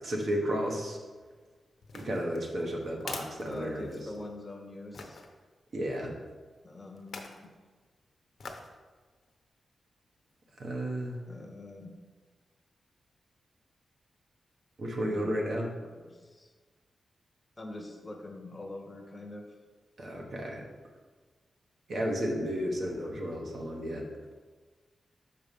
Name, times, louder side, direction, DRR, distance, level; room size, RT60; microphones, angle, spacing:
voice 1, 0.0-1.0 1.9-4.0 5.7-6.1 10.6-11.2 14.8-15.7 20.0-20.6 21.9-24.0, equal, 55° right, -1 dB, 1.3 m, -33 dB
sound 1, 1.8-4.3 4.9-5.3 7.0-7.4 8.4-8.8 9.2-9.3, left 4 dB, 60° left, 0.8 m, -44 dB
voice 2, 3.5-5.2 6.6-7.5 11.3-11.9 15.0-15.3 15.8-16.5 17.6-19.5, left 2 dB, 20° left, 3 dB, 0.8 m, -44 dB
6.3 x 4.9 x 5.3 m, 1.4 s
wide cardioid pair, 135°, 0 cm